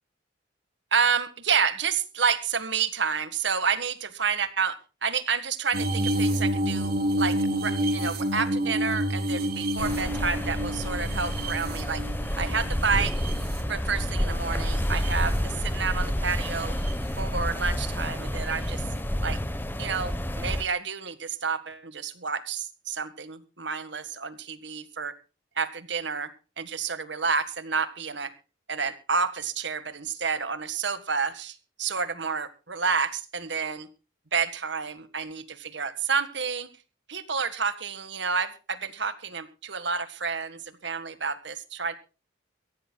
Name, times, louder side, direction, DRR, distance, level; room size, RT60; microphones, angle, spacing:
voice 1, 0.9-4.7 5.0-6.9 7.2-12.0 12.4-13.1 13.7-16.7 17.2-18.8 19.2-19.4 19.8-25.2 25.6-28.3 28.7-33.9 34.3-36.7 37.1-41.9, right 5 dB, 65° right, 12 dB, 1.7 m, -29 dB
sound 1, 5.7-14.1 14.6-15.4 16.6-16.9 18.7-18.8, right 1 dB, 50° right, 3.7 m, -29 dB
sound 2, 9.8-20.6, equal, 10° left, 1.1 m, -29 dB
24.0 x 15.5 x 2.3 m, 0.32 s
head